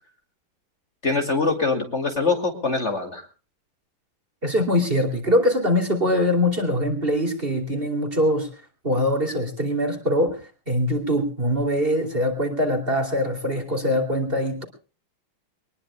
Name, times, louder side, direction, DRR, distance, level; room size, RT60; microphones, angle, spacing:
voice 1, 1.0-3.3, left 3 dB, 35° left, 4 dB, 2.7 m, -23 dB
voice 2, 4.4-8.5 8.8-10.4 10.7-14.6, left 1 dB, 25° right, 6 dB, 3.0 m, -23 dB
23.5 x 20.0 x 2.3 m, 0.36 s
omnidirectional pair, 2.3 m